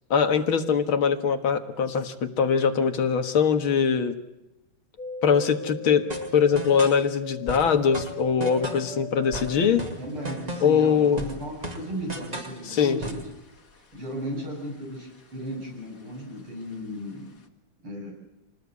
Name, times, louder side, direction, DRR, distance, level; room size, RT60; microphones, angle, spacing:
voice 1, 0.1-4.2 5.2-6.1 6.3-9.9 10.6-11.2 12.7-13.0, left 6 dB, 70° left, 8 dB, 2.4 m, -22 dB
sound 1, 5.0-14.4 14.6-15.5 15.9-16.8 17.2-17.3, left 3 dB, 40° left, 2.1 m, -40 dB
sound 2, 6.1-7.0 7.5-8.9 9.3-10.8 11.2-12.6 13.0-13.3, right 1 dB, 20° right, 2.2 m, -35 dB
voice 2, 9.5-13.2 13.9-17.3 17.8-18.1, equal, 85° right, 0 dB, 9.0 m, -35 dB
27.5 x 19.0 x 8.4 m, 0.94 s
omnidirectional pair, 2.3 m